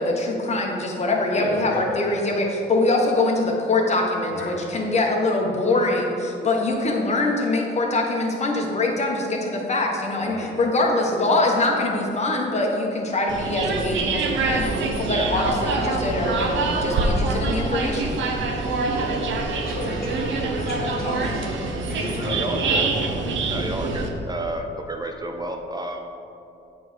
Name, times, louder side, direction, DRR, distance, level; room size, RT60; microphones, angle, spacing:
voice 1, 0.0-18.2, left 2 dB, 35° left, 0 dB, 1.3 m, -23 dB
voice 2, 1.3-1.9 4.3-4.5 10.1-10.5 14.4-14.6 18.4-18.7 19.6-21.6 21.9-23.1, left 2 dB, 50° left, -2 dB, 1.6 m, -33 dB
sound 1, 13.3-24.1, right 3 dB, 70° right, 0.9 m, -25 dB
voice 3, 22.1-22.9 23.5-26.1, right 1 dB, 20° right, 3 dB, 0.5 m, -31 dB
8.3 x 3.6 x 5.7 m, 2.7 s
cardioid pair, 90°, 20 cm